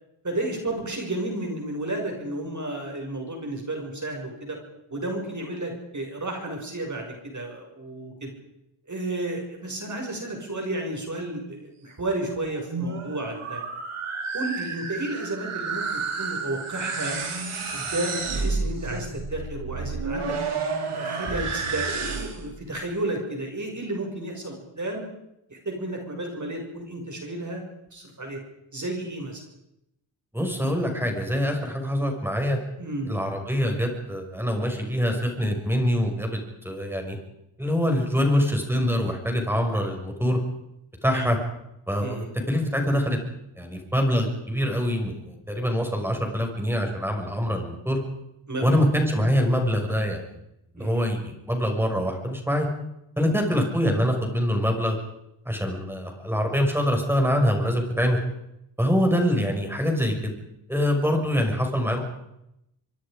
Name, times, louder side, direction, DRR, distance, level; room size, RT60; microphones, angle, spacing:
voice 1, 0.2-4.6 4.9-8.3 8.9-13.6 14.3-17.2 17.7-20.4 20.9-25.1 25.5-27.6 27.9-28.4 28.7-29.4 32.8-33.1 41.1-41.3 42.0-42.3 48.5-48.8 50.8-51.1, right 1 dB, 35° right, 2 dB, 6.1 m, -32 dB
sound 1, 12.5-22.5, right 4 dB, 85° right, 4.4 m, -31 dB
voice 2, 30.3-32.6 33.1-37.2 37.6-40.4 41.0-41.4 41.9-43.2 43.6-48.0 48.6-50.2 50.7-52.7 53.2-55.0 55.5-58.2 58.8-60.3 60.7-62.0, equal, 5° right, 2 dB, 6.1 m, -24 dB
25.0 x 24.5 x 5.1 m, 0.83 s
wide cardioid pair, 110°, 49 cm